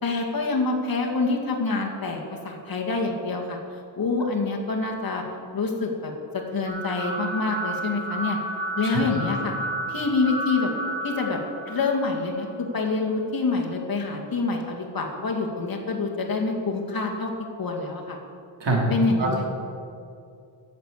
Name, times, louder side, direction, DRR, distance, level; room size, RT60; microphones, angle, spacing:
voice 1, 0.0-3.6 4.0-5.2 5.5-6.1 6.5-8.4 8.8-9.5 9.9-10.7 11.0-11.4 11.7-17.3 17.6-18.2 18.9-19.5, left 3 dB, 50° left, 0 dB, 2.0 m, -26 dB
sound 1, 6.6-12.7, right 1 dB, 15° right, 2.3 m, -32 dB
voice 2, 8.8-9.0 18.6-18.8 19.2-19.5, right 2 dB, 65° right, -2 dB, 2.9 m, -24 dB
10.5 x 7.3 x 8.3 m, 2.5 s
cardioid pair, 100°, 45 cm